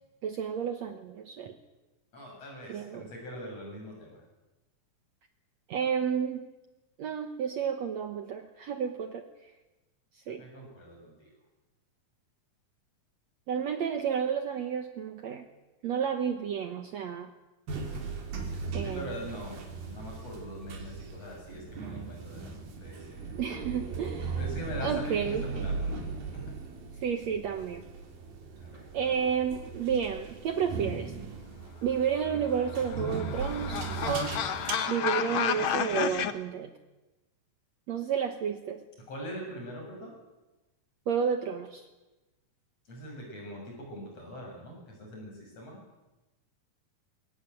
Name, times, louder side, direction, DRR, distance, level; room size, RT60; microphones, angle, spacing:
voice 1, 0.2-1.6 2.7-3.0 5.7-6.4 7.0-9.3 10.3-10.4 13.5-15.5 15.8-17.3 18.7-19.1 23.4-24.4 24.8-25.4 27.0-27.8 28.9-31.1 31.8-34.4 34.9-36.7 37.9-38.8 41.1-41.8, right 7 dB, 60° right, 7 dB, 2.0 m, -31 dB
voice 2, 2.1-4.2 10.3-11.3 18.7-23.3 24.3-26.5 28.6-29.1 39.1-40.1 42.9-45.8, equal, 45° left, 0 dB, 7.9 m, -43 dB
sound 1, 17.7-34.7, right 4 dB, 80° right, 4.9 m, -38 dB
sound 2, 32.4-36.3, left 8 dB, 90° left, 1.1 m, -31 dB
22.0 x 17.5 x 9.1 m, 1.1 s
omnidirectional pair, 4.1 m